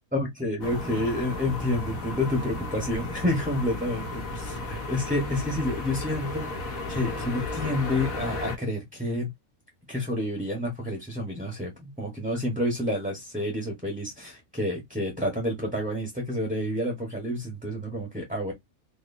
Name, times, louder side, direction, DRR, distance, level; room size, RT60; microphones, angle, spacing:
voice 1, 0.1-4.0 4.3-6.5 6.9-9.3 9.9-18.5, left 1 dB, 5° right, 1.3 m, -29 dB
sound 1, 0.6-8.6, left 2 dB, 85° left, 1.7 m, -34 dB
4.4 x 3.0 x 2.7 m
omnidirectional pair, 1.4 m